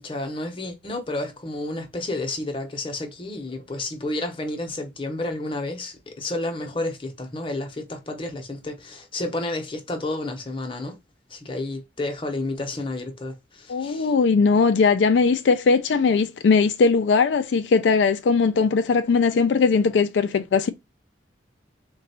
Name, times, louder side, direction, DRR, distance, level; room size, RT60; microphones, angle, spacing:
voice 1, 0.0-11.0 11.3-14.1, left 2 dB, 30° left, 0.8 m, -31 dB
voice 2, 13.7-20.7, left 4 dB, 70° left, 0.4 m, -19 dB
3.8 x 2.3 x 4.1 m
head